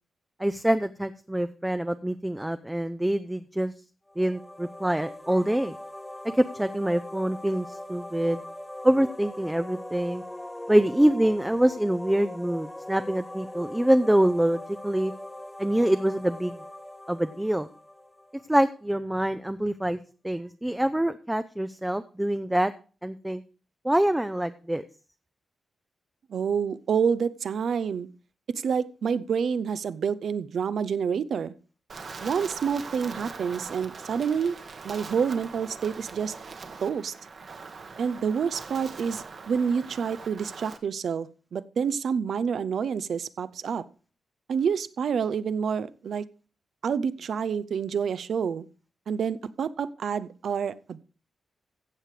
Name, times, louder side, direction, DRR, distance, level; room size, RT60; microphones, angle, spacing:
voice 1, 0.4-3.7 4.2-5.7 6.3-8.4 8.8-10.2 10.7-15.1 15.6-16.6 17.1-17.7 18.5-20.0 20.2-22.7 23.0-23.4 23.8-24.8, right 1 dB, 5° right, 11 dB, 0.5 m, -25 dB
sound 1, 4.1-18.8, left 1 dB, 10° left, 1.0 m, -41 dB
voice 2, 26.3-28.1 28.6-31.5 32.2-34.5 34.8-36.3 36.8-37.1 38.0-43.8 44.5-46.2 46.8-48.6 49.1-51.0, right 6 dB, 70° right, 17 dB, 0.6 m, -28 dB
Wind, 31.9-40.8, right 4 dB, 50° right, 1.3 m, -42 dB
15.0 x 7.6 x 4.9 m, 0.38 s
wide cardioid pair, 135°, 0 cm